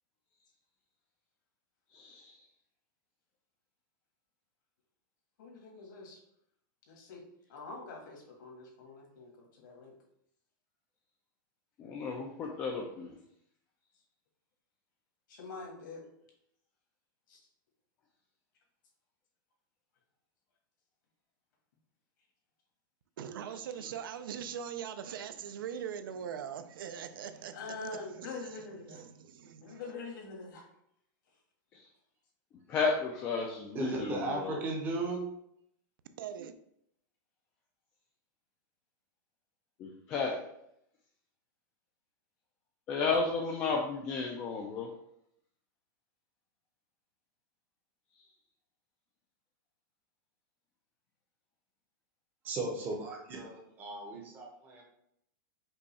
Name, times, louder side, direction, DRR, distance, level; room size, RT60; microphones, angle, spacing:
voice 1, 1.9-2.4 11.8-13.1 31.7-31.8 32.7-34.6 39.8-40.4 42.9-44.9, left 4 dB, 15° left, 0.3 m, -33 dB
voice 2, 5.4-6.2 6.9-7.2 7.5-10.0 15.3-16.0 17.3-17.4 27.5-29.0 29.6-30.6, left 3 dB, 65° left, 1.6 m, -45 dB
voice 3, 23.2-27.9 28.2-29.8 36.2-36.5, right 8 dB, 80° right, 0.5 m, -41 dB
voice 4, 33.7-35.2 52.4-54.8, right 3 dB, 15° right, 0.6 m, -36 dB
5.3 x 2.3 x 4.0 m
supercardioid pair, 175°, 11 cm